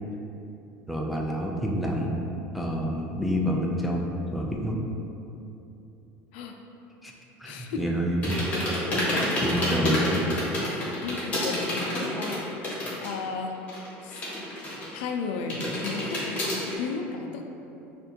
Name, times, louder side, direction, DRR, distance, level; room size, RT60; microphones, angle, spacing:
voice 1, 0.9-2.2 2.5-4.8 7.0-7.1 7.4-8.6 9.4-10.2, equal, ahead, -2 dB, 0.3 m, -28 dB
voice 2, 7.4-7.8 8.9-9.3 10.6-14.2 14.9-17.4, left 4 dB, 80° left, 3 dB, 0.4 m, -35 dB
sound 1, 8.2-13.2 13.5-15.1 15.5-16.7, left 1 dB, 25° left, 1.2 m, -29 dB
6.6 x 2.6 x 2.8 m, 2.9 s
cardioid pair, 160°, 6 cm